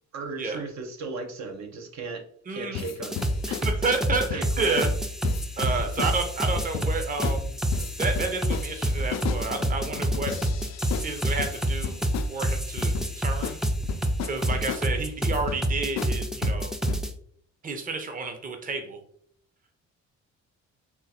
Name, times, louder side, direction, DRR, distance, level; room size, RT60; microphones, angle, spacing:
voice 1, 0.1-2.2 2.5-3.6 4.3-4.9, right 4 dB, 65° right, 4 dB, 0.9 m, -36 dB
voice 2, 2.5-2.9 3.6-4.9 5.6-7.6 8.0-10.3 11.0-12.0 12.3-13.6 14.2-16.7 17.6-19.0, right 3 dB, 30° right, 5 dB, 0.7 m, -30 dB
sound 1, 2.8-3.7 4.1-4.5 4.8-5.0 5.2-6.1 6.6-7.0 7.2-7.4 7.7-12.4 12.8-13.1 13.4-13.6 13.9-14.9 15.3-15.6 16.0-16.1 16.4-17.0, left 8 dB, 60° left, 0.4 m, -34 dB
sound 2, 3.0-17.1, right 1 dB, ahead, 0.4 m, -27 dB
3.7 x 2.4 x 4.3 m, 0.63 s
cardioid pair, 90°, 30 cm